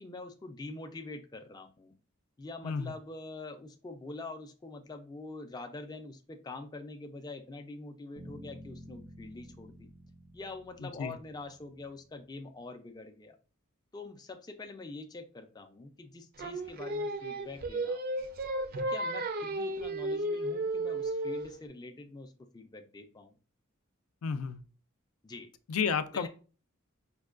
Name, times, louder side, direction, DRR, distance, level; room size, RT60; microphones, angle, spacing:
voice 1, 0.0-1.9 2.4-9.9 10.3-13.4 13.9-18.3 18.7-23.4 25.2-25.5 26.1-26.3, left 3 dB, 20° left, 5 dB, 0.3 m, -45 dB
sound 1, 8.2-12.1, equal, 85° right, 0.8 m, -52 dB
voice 2, 10.8-11.2 24.2-24.6 25.7-26.3, left 6 dB, 85° left, 11 dB, 0.4 m, -32 dB
Singing, 16.4-21.6, right 1 dB, 45° right, 0.4 m, -33 dB
5.2 x 2.2 x 2.4 m, 0.36 s
head